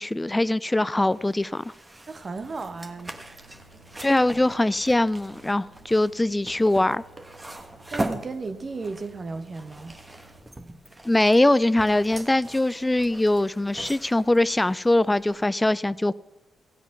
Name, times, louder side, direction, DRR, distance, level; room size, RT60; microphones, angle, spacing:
voice 1, 0.0-1.6 4.0-7.0 11.1-16.1, left 1 dB, 15° left, 0.3 m, -22 dB
sound 1, 1.1-15.4, right 1 dB, 20° right, 1.5 m, -40 dB
voice 2, 2.1-3.1 3.7-3.8 7.9-10.0, right 3 dB, 40° right, 1.2 m, -34 dB
sound 2, 2.4-10.4, right 2 dB, 85° right, 2.8 m, -54 dB
16.0 x 8.0 x 5.9 m
hypercardioid pair, 40°, 0 cm